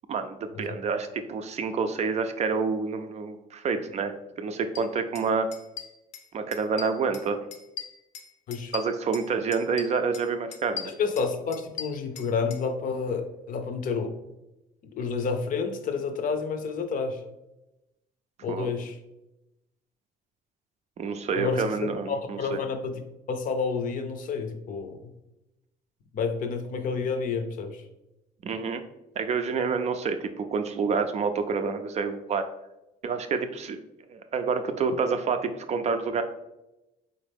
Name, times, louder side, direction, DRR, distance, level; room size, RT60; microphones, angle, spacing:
voice 1, 0.1-5.5 6.3-7.4 8.7-10.9 18.5-18.7 21.0-22.6 28.4-28.8 29.2-32.4 33.0-33.8 34.1-36.2, right 5 dB, 40° right, 8 dB, 0.4 m, -28 dB
sound 1, 4.7-4.8 5.1-5.3 5.5-6.3 6.5-7.2 7.5-9.3 9.5-10.2 10.5-12.6, left 7 dB, 85° left, 0.8 m, -39 dB
voice 2, 10.8-14.2 15.0-17.2 18.4-19.0 21.3-25.0 26.1-27.8, left 5 dB, 55° left, 6 dB, 0.6 m, -30 dB
4.2 x 3.6 x 3.4 m, 0.96 s
cardioid pair, 110°, 17 cm